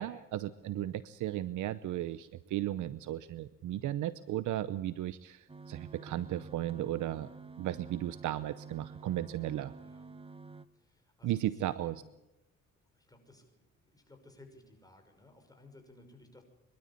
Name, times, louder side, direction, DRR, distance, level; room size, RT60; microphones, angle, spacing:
voice 1, 0.0-7.3 7.6-9.7 11.2-11.9, right 13 dB, 80° right, 15 dB, 0.8 m, -35 dB
sound 1, 5.5-10.6, right 4 dB, 20° right, 1.1 m, -49 dB
voice 2, 9.8-10.1 10.7-12.1 12.9-16.4, left 2 dB, 10° left, 4 dB, 6.0 m, -58 dB
24.0 x 12.5 x 9.9 m, 0.90 s
cardioid pair, 90°, 30 cm